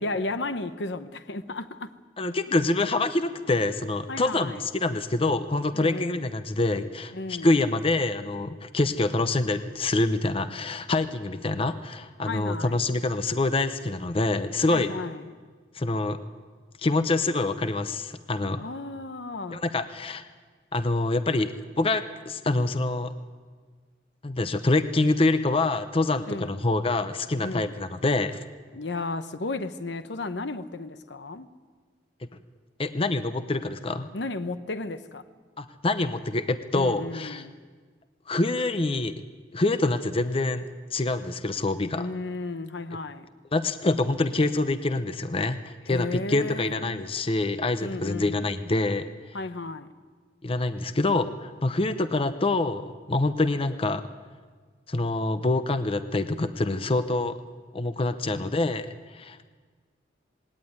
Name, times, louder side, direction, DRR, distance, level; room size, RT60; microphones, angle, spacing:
voice 1, 0.0-1.9 4.1-4.6 5.7-6.2 7.1-7.6 12.2-12.8 14.6-15.2 18.6-19.6 26.3-26.5 27.4-27.7 28.7-31.5 34.1-35.2 36.7-37.6 42.0-43.3 45.9-47.1 47.8-48.5 49.3-49.9 58.2-58.6, left 3 dB, 75° left, 1.0 m, -34 dB
voice 2, 2.2-14.9 15.7-16.2 16.8-18.6 19.5-20.3 20.7-23.1 24.2-28.4 32.2-32.3 32.8-34.1 35.6-37.4 38.3-39.2 39.5-42.1 43.5-49.1 50.4-54.1 54.9-57.4 57.7-59.5, left 2 dB, 30° left, 0.7 m, -26 dB
20.0 x 17.5 x 9.5 m
head